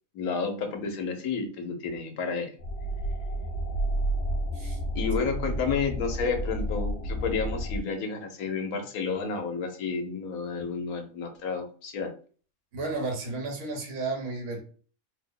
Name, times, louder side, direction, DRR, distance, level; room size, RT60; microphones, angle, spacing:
voice 1, 0.1-2.5 4.9-12.1, left 5 dB, 85° left, 4 dB, 1.3 m, -31 dB
sound 1, 2.6-7.8, right 1 dB, 65° left, 0.8 m, -31 dB
voice 2, 12.7-14.6, right 3 dB, 70° right, 1 dB, 1.3 m, -33 dB
3.1 x 2.1 x 3.7 m, 0.41 s
omnidirectional pair, 1.5 m